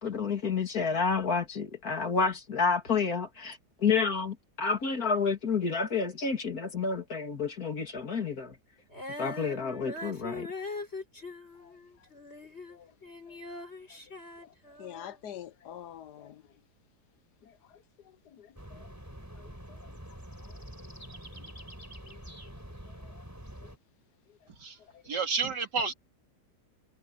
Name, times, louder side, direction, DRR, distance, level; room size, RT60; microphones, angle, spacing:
voice 1, 0.0-8.6 9.2-10.5, left 5 dB, 60° left, 3.3 m, -29 dB
Female singing, 8.9-15.1, left 2 dB, 40° left, 6.4 m, -42 dB
voice 2, 14.8-16.4 18.4-18.8 19.4-19.5, left 10 dB, 75° left, 1.5 m, -45 dB
sound 1, 18.6-23.8, equal, 10° right, 5.1 m, -46 dB
voice 3, 25.1-25.9, right 5 dB, 85° right, 3.5 m, -30 dB
omnidirectional pair, 1.8 m